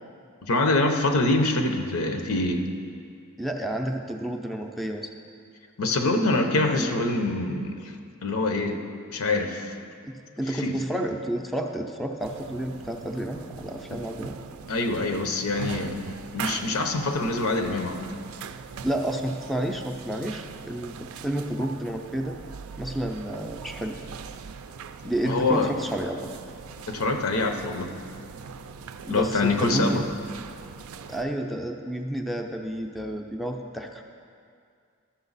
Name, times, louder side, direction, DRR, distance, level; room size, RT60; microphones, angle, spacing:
voice 1, 0.5-2.7 5.8-7.9 8.2-8.8 9.1-9.7 10.5-10.8 13.9-14.0 14.7-16.0 16.3-18.1 25.2-25.7 26.9-27.9 29.1-30.1, left 2 dB, 75° left, 5 dB, 0.8 m, -25 dB
voice 2, 3.4-5.1 6.8-7.0 10.1-14.4 18.8-22.4 22.8-24.0 25.0-26.3 29.0-30.1 31.1-34.0, right 1 dB, ahead, 2 dB, 0.4 m, -30 dB
sound 1, 12.2-31.2, right 5 dB, 70° right, 0.4 m, -41 dB
12.5 x 6.5 x 4.0 m, 2.2 s
head